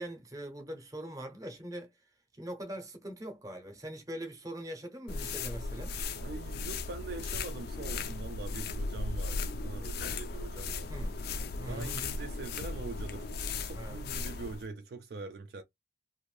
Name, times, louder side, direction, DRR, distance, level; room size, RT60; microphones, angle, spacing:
voice 1, 0.0-1.9 2.4-6.0 8.5-8.6 10.9-11.2 11.6-12.0 13.8-14.0, right 1 dB, 20° right, 0.7 m, -42 dB
sound 1, 5.1-14.6, left 3 dB, 50° left, 0.4 m, -37 dB
voice 2, 6.2-11.0 11.7-13.3 13.6-15.6, right 3 dB, 55° right, 0.4 m, -43 dB
2.6 x 2.5 x 3.1 m
head